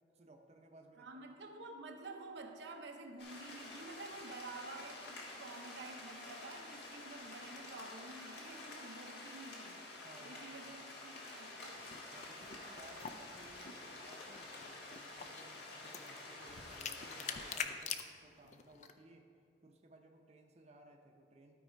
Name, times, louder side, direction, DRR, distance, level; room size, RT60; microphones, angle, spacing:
voice 1, 0.1-1.3 10.0-10.7 12.1-19.3 19.6-21.5, right 2 dB, 40° right, 2 dB, 0.7 m, -60 dB
voice 2, 1.0-9.8 10.2-11.8 12.4-13.0, right 3 dB, 80° right, 4 dB, 0.8 m, -50 dB
sound 1, 3.2-17.6, left 2 dB, 70° left, 1.5 m, -50 dB
Bowed string instrument, 4.1-8.4, right 1 dB, 90° left, 1.8 m, -67 dB
sound 2, 11.7-18.9, left 7 dB, 40° left, 0.5 m, -47 dB
12.5 x 4.8 x 4.5 m, 2.4 s
head